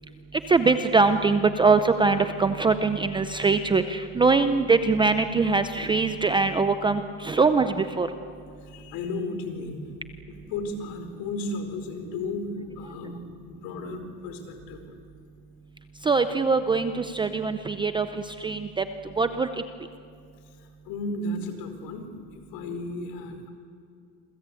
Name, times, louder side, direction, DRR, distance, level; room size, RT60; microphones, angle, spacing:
voice 1, 0.5-8.1 16.1-18.1 18.4-18.8 19.2-19.5, right 4 dB, 10° right, 9 dB, 0.6 m, -22 dB
voice 2, 8.6-9.8 10.3-14.8 20.4-23.5, left 2 dB, 55° left, 7 dB, 4.7 m, -34 dB
28.0 x 22.5 x 8.4 m, 2.3 s
cardioid pair, 150°, 40 cm